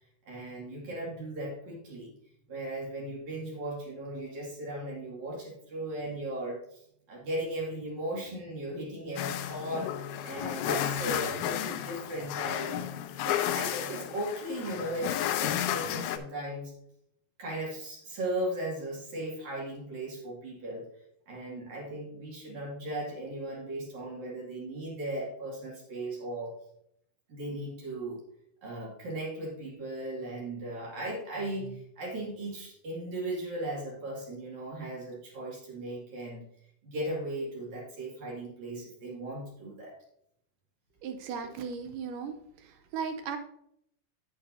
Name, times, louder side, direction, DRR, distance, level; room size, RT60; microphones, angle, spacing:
voice 1, 0.3-2.1 2.5-12.9 13.2-16.7 17.4-20.9 21.3-26.5 27.3-28.2 28.6-36.4 36.8-39.9, right 1 dB, 50° right, -4 dB, 3.3 m, -37 dB
sound 1, 9.2-16.2, left 11 dB, 90° left, 2.6 m, -32 dB
voice 2, 41.0-42.3 42.9-43.4, right 6 dB, 80° right, 8 dB, 1.9 m, -36 dB
9.2 x 8.9 x 2.7 m, 0.73 s
omnidirectional pair, 4.4 m